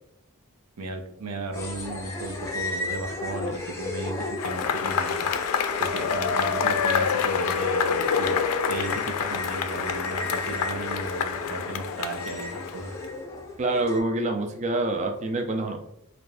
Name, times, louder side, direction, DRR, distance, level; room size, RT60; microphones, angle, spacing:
voice 1, 0.8-5.3 5.8-12.9, right 2 dB, 90° right, 5 dB, 0.6 m, -35 dB
sound 1, 1.5-14.0, left 2 dB, 15° left, 0.6 m, -36 dB
Cheering / Applause / Crowd, 4.4-13.1, left 6 dB, 75° left, 0.4 m, -27 dB
voice 2, 13.6-15.9, right 2 dB, 30° right, 4 dB, 0.4 m, -26 dB
3.5 x 2.5 x 3.3 m, 0.76 s
head